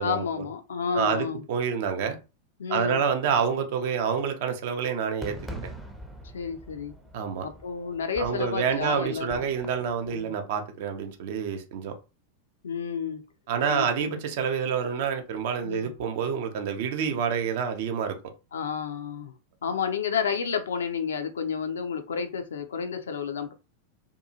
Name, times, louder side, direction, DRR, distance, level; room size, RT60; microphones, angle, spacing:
voice 1, 0.0-1.4 2.6-3.0 6.3-6.9 7.4-9.4 10.1-10.3 12.6-13.2 13.7-14.2 15.6-15.9 18.5-19.3 19.6-23.5, left 6 dB, 65° left, 0.4 m, -31 dB
voice 2, 0.9-2.2 2.7-5.4 7.1-7.5 8.2-11.9 13.5-18.2, right 7 dB, 50° right, 0.5 m, -28 dB
Fireworks, 5.2-10.3, right 1 dB, 5° right, 0.5 m, -43 dB
2.7 x 2.3 x 2.6 m
figure-of-eight pair, 90°, 0 cm